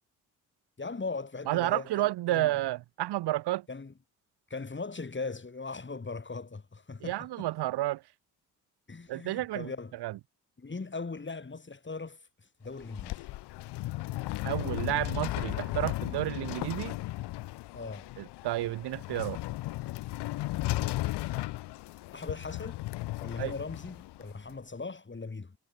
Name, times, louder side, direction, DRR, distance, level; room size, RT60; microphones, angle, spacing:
voice 1, 0.8-2.5 3.7-3.9 4.5-7.5 8.9-9.9 10.6-13.3 17.7-18.1 20.7-21.0 22.1-22.8 23.2-25.6, left 4 dB, 30° left, 5.5 m, -39 dB
voice 2, 1.5-3.7 7.0-8.0 9.1-9.7 10.0-10.1 14.4-17.0 18.2-19.4 23.4-23.5, right 16 dB, 75° right, 1.9 m, -31 dB
sound 1, 12.7-24.6, left 18 dB, 85° left, 2.8 m, -35 dB
supercardioid pair, 60°, 40 cm